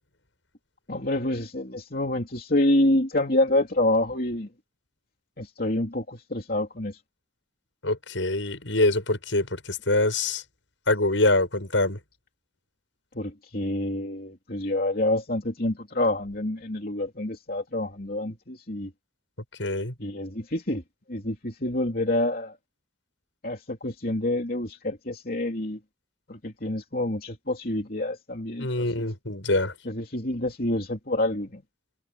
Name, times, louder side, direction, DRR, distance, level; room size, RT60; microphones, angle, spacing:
voice 1, 0.9-4.5 5.4-7.0 13.1-18.9 20.0-20.8 21.1-22.6 23.4-25.8 26.3-28.7 29.0-29.1 29.8-31.6, left 1 dB, 50° left, 3.1 m, -27 dB
voice 2, 7.8-10.4 10.9-12.0 19.6-19.9 28.6-29.7, left 2 dB, 85° left, 7.3 m, -24 dB
head